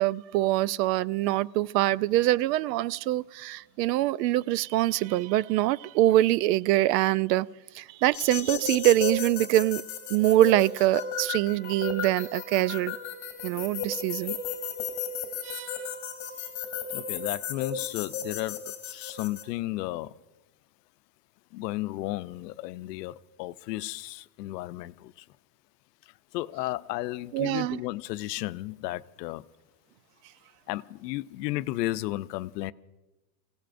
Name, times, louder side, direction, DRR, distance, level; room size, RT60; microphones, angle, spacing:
voice 1, 0.0-7.5 7.7-9.8 10.1-13.0 13.4-14.4 15.4-15.9 27.3-27.8, right 15 dB, 85° right, 0.6 m, -24 dB
sound 1, 8.1-19.4, left 7 dB, 35° left, 2.9 m, -35 dB
voice 2, 16.9-20.1 21.5-25.2 26.3-29.4 30.7-32.7, left 17 dB, 85° left, 0.7 m, -34 dB
29.0 x 17.0 x 2.6 m
supercardioid pair, 160°, 48 cm